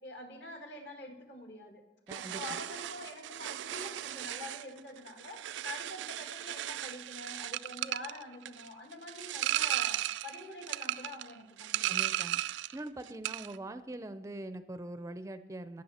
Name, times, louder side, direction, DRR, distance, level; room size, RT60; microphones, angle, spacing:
voice 1, 0.0-1.8 2.1-12.1, left 2 dB, 65° left, 4 dB, 1.7 m, -46 dB
voice 2, 2.1-2.6 11.9-12.4 12.7-15.8, right 1 dB, 15° right, 11 dB, 0.4 m, -43 dB
sound 1, 2.1-12.8 13.1-13.6, right 13 dB, 90° right, 0.3 m, -36 dB
17.5 x 6.3 x 4.2 m, 1.0 s
head